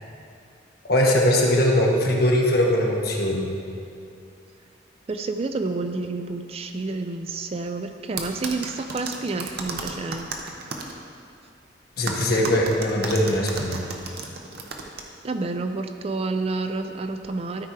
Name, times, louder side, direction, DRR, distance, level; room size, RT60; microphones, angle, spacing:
voice 1, 0.9-3.5 12.0-13.8, left 1 dB, 55° left, -1 dB, 1.3 m, -21 dB
voice 2, 5.1-10.3 15.2-17.7, right 3 dB, 30° right, 7 dB, 0.4 m, -29 dB
sound 1, 8.2-10.9 12.1-15.0, right 4 dB, 55° right, 0.8 m, -33 dB
13.0 x 4.5 x 4.7 m, 2.5 s
head